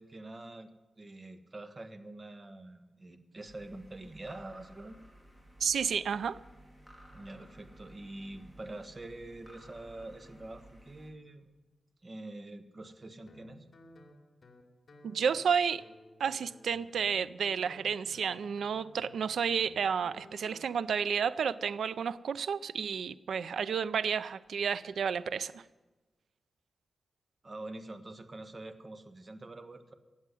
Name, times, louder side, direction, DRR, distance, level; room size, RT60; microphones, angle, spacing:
voice 1, 0.0-5.0 7.1-11.5 12.0-13.7 27.4-29.9, right 2 dB, 35° right, 8 dB, 1.3 m, -46 dB
sound 1, 3.5-11.1, right 1 dB, 5° right, 3.1 m, -56 dB
voice 2, 5.6-6.4 15.0-15.8 16.2-25.6, right 7 dB, 85° right, 16 dB, 0.4 m, -31 dB
Guitar, 13.3-20.6, left 1 dB, 45° left, 2.7 m, -56 dB
16.0 x 7.3 x 9.9 m, 1.2 s
wide cardioid pair, 90°, 0 cm